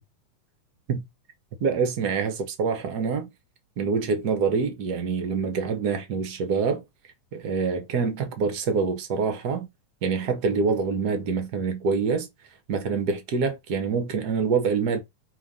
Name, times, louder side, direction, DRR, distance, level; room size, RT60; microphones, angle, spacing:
voice 1, 1.6-3.3 3.8-6.8 7.3-9.7 10.0-12.3 12.7-15.0, right 5 dB, 65° right, 0.9 m, -26 dB
4.6 x 3.8 x 5.4 m
omnidirectional pair, 3.9 m